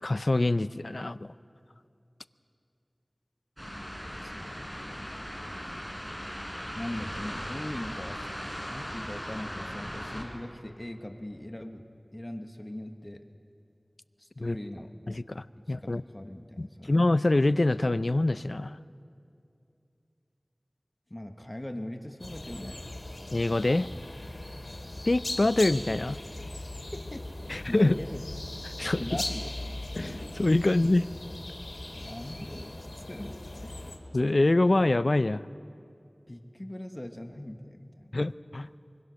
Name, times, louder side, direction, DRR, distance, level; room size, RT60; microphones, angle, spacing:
voice 1, 0.0-1.3 14.4-14.6 15.1-16.0 16.6-18.8 23.3-23.9 25.1-26.2 27.5-28.0 28.8-29.2 30.0-31.1 34.1-35.4 38.1-38.7, left 2 dB, 65° left, 14 dB, 0.5 m, -25 dB
sound 1, 3.6-10.2, equal, ahead, 5.0 m, -38 dB
voice 2, 4.0-5.1 6.8-8.3 8.7-11.8 12.1-13.2 14.2-14.9 15.7-17.0 21.1-22.8 26.7-28.2 28.8-29.8 31.9-33.8 36.3-38.1, left 1 dB, 30° left, 5 dB, 1.5 m, -41 dB
sound 2, 22.2-34.0, left 1 dB, 80° left, 2.9 m, -39 dB
25.0 x 24.5 x 6.5 m, 2.5 s
wide cardioid pair, 45°, 0 cm